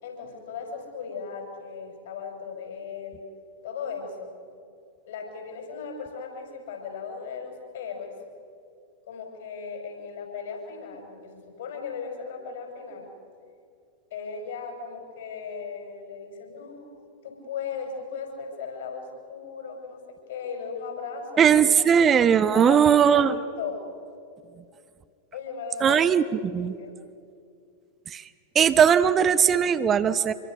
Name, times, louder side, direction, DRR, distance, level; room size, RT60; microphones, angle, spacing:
voice 1, 0.0-3.3 3.6-4.3 5.1-8.2 9.1-13.1 14.1-16.9 17.2-21.9 22.5-23.8 25.3-26.0 26.3-26.9, left 5 dB, 60° left, 3 dB, 5.8 m, -37 dB
voice 2, 21.4-23.4 25.8-26.7 28.1-28.2 28.5-30.3, right 8 dB, 25° right, 12 dB, 0.8 m, -19 dB
26.5 x 23.5 x 6.6 m, 2.4 s
figure-of-eight pair, 90°, 0 cm